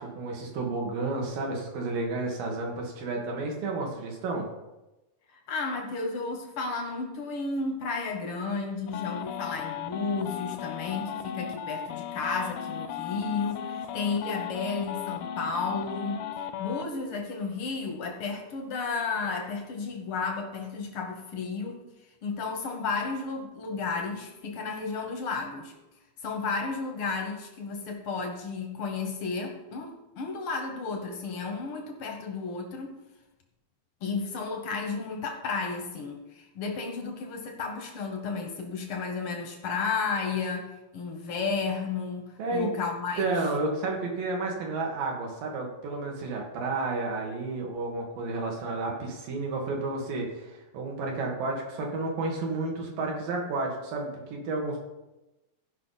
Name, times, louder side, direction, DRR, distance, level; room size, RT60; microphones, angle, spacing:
voice 1, 0.0-4.5 42.4-42.7 43.2-54.8, right 3 dB, 85° right, 0 dB, 3.4 m, -31 dB
voice 2, 5.3-16.3 16.6-21.8 22.2-25.7 26.2-33.0 34.0-43.4, left 4 dB, 75° left, 3 dB, 1.2 m, -33 dB
sound 1, 8.9-16.9, left 10 dB, 90° left, 2.4 m, -36 dB
16.0 x 5.5 x 4.0 m, 1.0 s
omnidirectional pair, 3.9 m